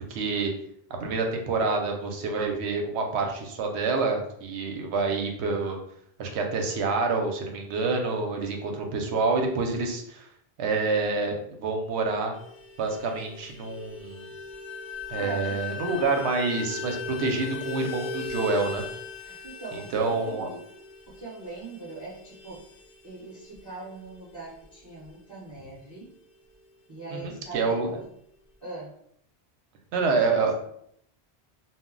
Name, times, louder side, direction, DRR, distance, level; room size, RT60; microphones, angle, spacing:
voice 1, 0.1-0.5 1.0-5.8 6.2-10.3 10.6-11.4 11.6-12.3 12.8-14.3 15.1-18.8 19.7-20.5 27.1-27.9 29.9-30.5, right 3 dB, 80° right, 3 dB, 0.8 m, -27 dB
Vehicle horn car horn honking, 12.3-26.2 26.5-26.6 26.9-27.1 27.4-28.1, left 1 dB, 40° left, 0.5 m, -42 dB
sound 1, 14.2-20.6, left 13 dB, 70° left, 0.8 m, -39 dB
voice 2, 15.1-15.6 16.2-16.3 19.3-20.6 21.1-22.7 23.0-26.1 26.9-28.1 28.6-28.9 30.3-30.5, right 3 dB, 25° right, -7 dB, 0.6 m, -41 dB
2.1 x 2.0 x 3.6 m, 0.70 s
omnidirectional pair, 1.1 m